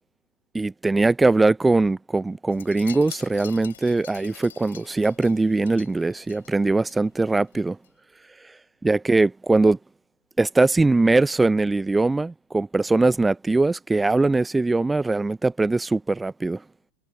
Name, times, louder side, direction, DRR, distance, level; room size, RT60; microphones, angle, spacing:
voice 1, 0.5-7.8 8.8-9.8 10.4-16.6, right 3 dB, 10° right, 0.5 m, -21 dB
Wind chime, 2.5-7.0 7.3-7.6 7.8-7.9, left 10 dB, 65° left, 4.7 m, -45 dB
figure-of-eight pair, 90°, 0 cm